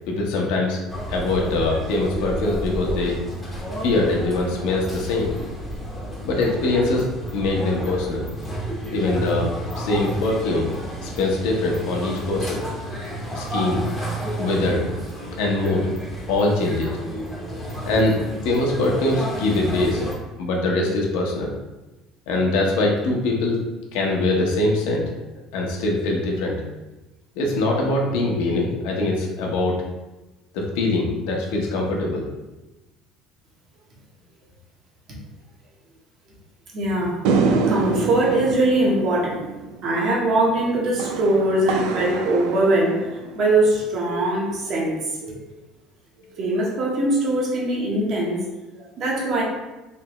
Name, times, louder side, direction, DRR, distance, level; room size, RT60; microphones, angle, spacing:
voice 1, 0.1-0.8 1.1-3.2 3.8-5.3 6.2-7.1 7.3-8.3 8.9-10.7 11.0-12.6 13.3-13.9 14.4-14.8 15.4-15.9 16.3-16.9 17.9-18.2 18.4-20.0 20.4-21.5 22.3-23.6 23.9-25.0 25.5-26.6 27.4-29.8 30.5-32.3, left 2 dB, 80° left, -1 dB, 0.8 m, -22 dB
sound 1, 0.9-20.2, right 1 dB, 5° left, 0.7 m, -31 dB
voice 2, 36.7-37.2 37.7-39.4 39.8-45.4 46.3-48.4 48.8-49.4, right 1 dB, 40° right, -2 dB, 0.9 m, -22 dB
sound 2, 37.2-43.7, right 4 dB, 75° right, 0.4 m, -26 dB
3.3 x 3.2 x 3.0 m, 1.1 s
cardioid pair, 165°, 0 cm